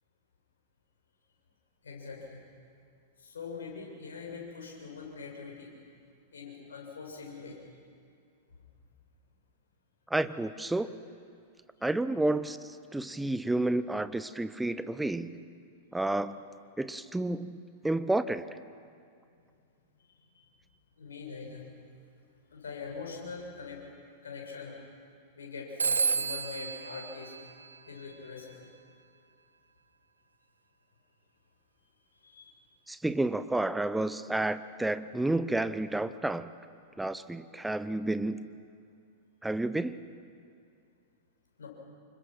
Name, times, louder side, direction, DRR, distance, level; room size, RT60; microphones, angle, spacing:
voice 1, 1.8-2.4 3.2-5.7 6.3-7.6 12.1-12.2 20.2-20.6 21.0-21.7 22.4-23.8 24.2-24.8 25.3-27.3 27.9-28.7 32.2-32.6 41.6-41.7, left 5 dB, 75° left, -1 dB, 7.2 m, -43 dB
voice 2, 10.1-10.9 11.8-15.4 15.9-16.4 16.8-18.6 32.9-36.5 37.0-38.5 39.4-40.0, right 2 dB, 5° right, 14 dB, 0.9 m, -30 dB
Telephone, 25.8-28.3, right 5 dB, 85° right, 0.8 m, -32 dB
29.0 x 25.0 x 6.1 m, 2.4 s
figure-of-eight pair, 100°, 0 cm